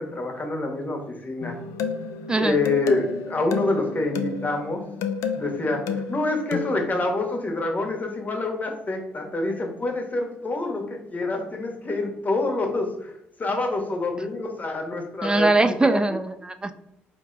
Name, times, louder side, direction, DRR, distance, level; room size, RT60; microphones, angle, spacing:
voice 1, 0.0-1.5 2.4-4.8 5.3-13.1 13.4-16.0, left 2 dB, 30° left, 3 dB, 1.1 m, -27 dB
sound 1, 1.4-6.9, left 6 dB, 65° left, 0.4 m, -32 dB
voice 2, 2.3-2.6 15.2-16.7, right 2 dB, 15° right, 9 dB, 0.4 m, -21 dB
4.3 x 2.1 x 3.8 m, 0.81 s
hypercardioid pair, 50°, 6 cm